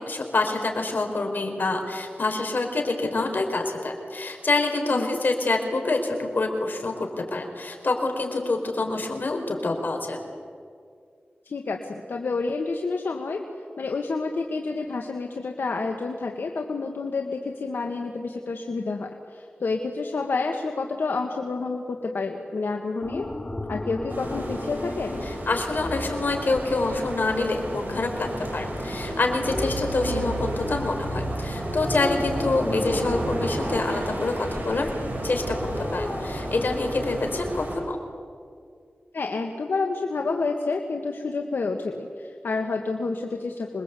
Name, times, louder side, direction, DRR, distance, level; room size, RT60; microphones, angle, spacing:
voice 1, 0.1-10.2 25.5-34.9 35.2-35.6 35.9-38.0, left 3 dB, 65° left, 4 dB, 4.7 m, -26 dB
voice 2, 11.4-13.4 13.8-23.3 23.7-25.2 30.0-30.3 32.6-33.2 39.1-43.8, left 3 dB, 85° left, 2 dB, 1.7 m, -29 dB
sound 1, 23.0-37.8, left 1 dB, 30° left, 3.1 m, -36 dB
sound 2, 24.1-37.8, right 1 dB, 65° right, 7.5 m, -33 dB
27.0 x 22.0 x 8.4 m, 2.2 s
wide cardioid pair, 80°, 4 cm